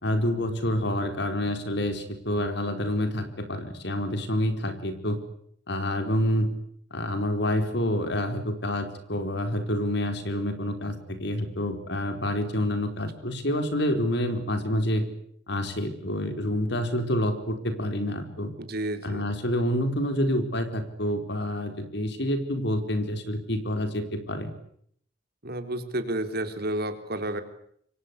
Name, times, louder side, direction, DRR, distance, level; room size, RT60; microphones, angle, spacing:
voice 1, 0.0-5.2 5.7-6.5 6.9-15.1 15.5-18.5 19.0-24.5, left 1 dB, 65° left, 8 dB, 4.5 m, -28 dB
voice 2, 18.6-19.3 25.4-27.4, right 1 dB, 55° right, 8 dB, 3.9 m, -31 dB
27.5 x 23.5 x 8.4 m, 0.68 s
head